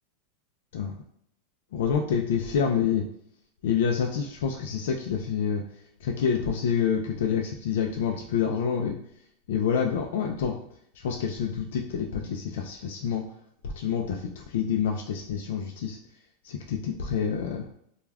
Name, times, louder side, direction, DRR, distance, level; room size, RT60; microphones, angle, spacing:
voice 1, 1.7-3.0 3.6-5.6 6.0-9.0 9.5-10.5 11.0-13.2 13.8-16.0 16.4-17.7, left 7 dB, 75° left, 2 dB, 0.3 m, -27 dB
2.3 x 2.2 x 3.3 m, 0.70 s
supercardioid pair, 175°, 0 cm